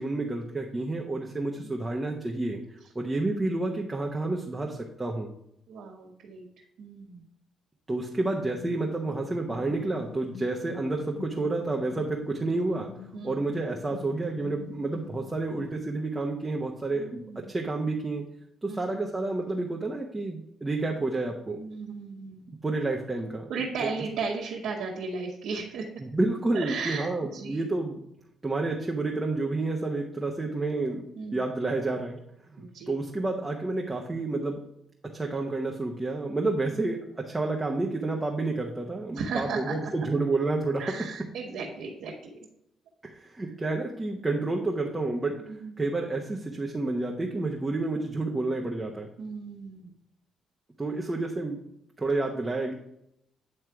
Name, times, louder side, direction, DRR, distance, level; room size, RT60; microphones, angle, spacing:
voice 1, 0.0-5.3 7.9-12.9 13.2-18.2 18.6-21.6 22.6-23.5 23.8-23.9 26.0-28.0 28.4-31.0 31.3-32.2 32.5-34.6 35.1-40.9 43.0-45.4 45.8-49.1 50.8-51.6 52.0-52.7, right 2 dB, 20° right, 0 dB, 0.9 m, -30 dB
voice 2, 5.7-6.5 6.8-7.2 13.1-13.4 16.9-17.5 18.7-18.9 21.5-22.5 23.5-25.9 26.5-27.6 31.2-31.4 32.6-33.0 39.1-39.7 40.8-42.3 44.2-44.3 45.4-45.7 49.2-49.9, right 4 dB, 80° right, -4 dB, 1.2 m, -35 dB
sound 1, 8.4-15.8, left 9 dB, 85° left, 0.5 m, -46 dB
9.2 x 3.2 x 4.7 m, 0.79 s
cardioid pair, 90°, 0 cm